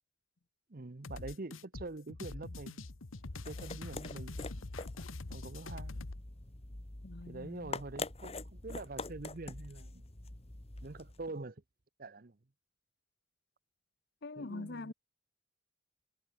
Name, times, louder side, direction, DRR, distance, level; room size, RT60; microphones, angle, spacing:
voice 1, 0.7-2.9 3.4-4.4 5.3-6.0 7.3-10.0 10.8-11.6 12.0-12.4 14.4-14.9, right 2 dB, 45° right, 0.8 m, -45 dB
sound 1, 1.0-6.2, left 2 dB, 85° left, 1.2 m, -44 dB
sound 2, 3.1-11.3, left 3 dB, 30° left, 1.5 m, -45 dB
voice 2, 7.0-7.8 14.2-14.9, left 2 dB, 55° left, 0.8 m, -44 dB
head